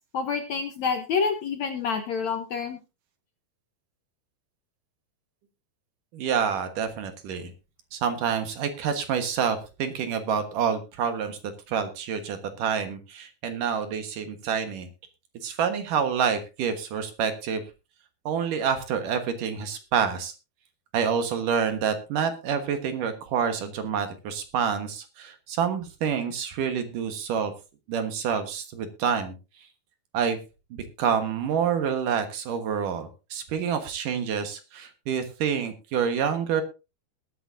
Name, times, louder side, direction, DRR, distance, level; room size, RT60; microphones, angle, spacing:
voice 1, 0.1-2.8, left 5 dB, 65° left, 6 dB, 1.8 m, -28 dB
voice 2, 6.1-7.5 7.9-11.4 11.7-14.9 15.3-17.6 18.3-20.3 20.9-27.5 27.9-29.3 30.1-30.4 30.7-36.6, right 7 dB, 65° right, 8 dB, 2.7 m, -27 dB
21.0 x 9.6 x 2.7 m, 0.29 s
omnidirectional pair, 4.5 m